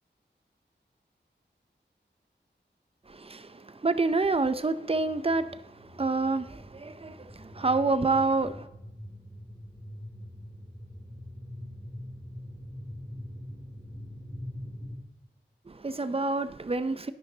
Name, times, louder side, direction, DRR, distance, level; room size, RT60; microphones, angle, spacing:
voice 1, 3.1-8.7 15.7-17.1, right 3 dB, 30° right, 12 dB, 0.5 m, -28 dB
sound 1, 4.9-15.0, left 1 dB, ahead, 2.6 m, -43 dB
10.5 x 9.6 x 2.7 m, 0.90 s
wide cardioid pair, 75°, 19 cm